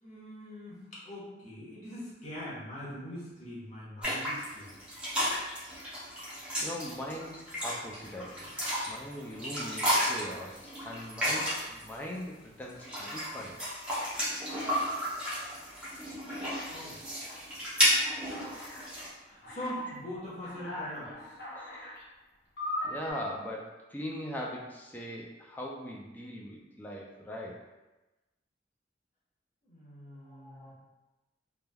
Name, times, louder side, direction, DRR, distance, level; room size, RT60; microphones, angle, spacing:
voice 1, 0.0-4.8 16.7-17.0 19.2-21.4 29.6-30.7, equal, 45° left, -8 dB, 1.0 m, -42 dB
sound 1, 4.0-11.9 12.6-19.1, equal, 5° right, 0.7 m, -32 dB
voice 2, 6.6-8.5 8.9-13.6 17.2-17.4 21.5-21.9 22.8-27.6 30.2-30.7, equal, 10° left, -2 dB, 0.3 m, -41 dB
Alarm, 17.9-18.9 19.4-19.9 20.4-22.0 22.6-23.1, left 1 dB, 65° left, 0.7 m, -39 dB
3.2 x 2.2 x 2.2 m, 1.1 s
head